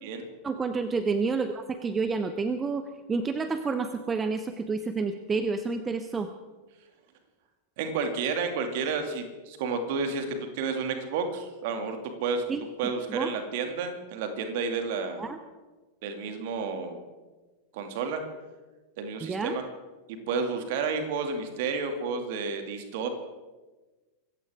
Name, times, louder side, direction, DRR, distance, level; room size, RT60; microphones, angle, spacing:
voice 1, 0.4-6.3 12.5-13.3 15.2-15.4 19.2-19.6, right 4 dB, 15° right, 10 dB, 0.9 m, -29 dB
voice 2, 7.8-12.4 12.8-15.3 16.0-17.0 17.7-18.2 19.0-19.6 20.1-23.1, right 5 dB, 50° right, 6 dB, 2.5 m, -31 dB
25.5 x 15.0 x 3.7 m, 1.2 s
figure-of-eight pair, 90°, 0 cm